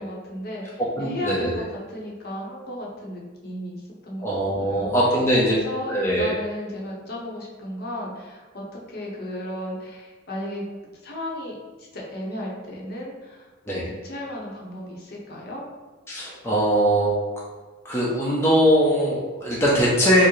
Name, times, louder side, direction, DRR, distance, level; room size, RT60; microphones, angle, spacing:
voice 1, 0.0-4.9 5.4-10.6 11.0-15.6, left 1 dB, 50° left, -3 dB, 0.7 m, -34 dB
voice 2, 1.0-1.5 4.2-5.6 5.9-6.4 13.7-13.8 16.1-17.1 17.8-20.3, equal, 15° left, -6 dB, 0.5 m, -21 dB
4.5 x 2.1 x 3.1 m, 1.4 s
head